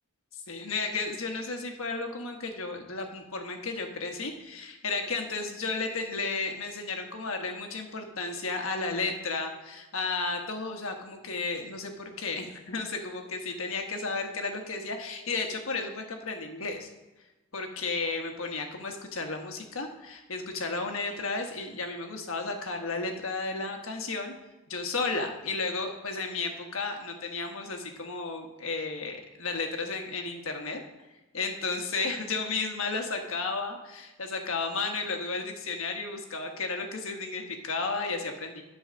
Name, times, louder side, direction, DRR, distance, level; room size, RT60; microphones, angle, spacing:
voice 1, 0.3-16.9 17.5-24.3 24.7-30.8 31.3-38.6, left 3 dB, 70° left, 4 dB, 1.3 m, -33 dB
10.0 x 4.8 x 6.2 m, 1.1 s
head